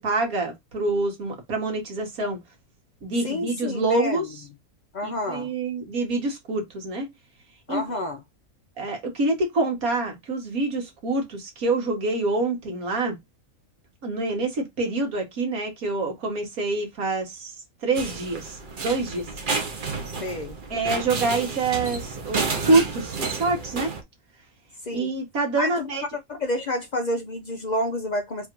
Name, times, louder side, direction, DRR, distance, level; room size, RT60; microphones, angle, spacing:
voice 1, 0.0-2.4 3.0-4.3 5.0-7.1 7.7-8.0 8.8-13.2 14.0-17.5 17.8-19.3 20.7-23.9 24.9-26.0, right 3 dB, 80° right, 1.8 m, -26 dB
voice 2, 3.2-4.3 4.9-5.5 7.7-8.2 20.2-20.6 24.8-25.1 25.6-25.9 26.3-28.5, left 1 dB, 65° left, 0.4 m, -29 dB
sound 1, 17.9-24.0, right 4 dB, 45° right, 0.9 m, -31 dB
3.6 x 2.5 x 4.5 m
omnidirectional pair, 1.5 m